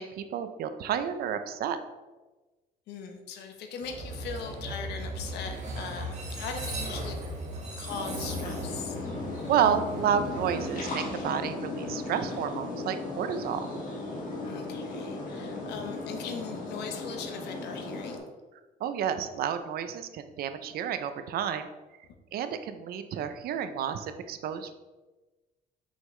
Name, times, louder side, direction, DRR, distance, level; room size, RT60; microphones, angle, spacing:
voice 1, 0.0-1.8 9.5-13.7 18.8-21.7 22.3-24.7, right 8 dB, 65° right, 9 dB, 0.6 m, -30 dB
voice 2, 2.9-7.2 7.8-9.0 14.4-18.2, left 6 dB, 80° left, 5 dB, 1.0 m, -40 dB
Train, 3.8-11.8, right 1 dB, 45° right, 1.6 m, -38 dB
sound 1, 7.9-18.2, left 2 dB, 50° left, 1.8 m, -36 dB
6.0 x 5.6 x 3.2 m, 1.2 s
cardioid pair, 110°, 17 cm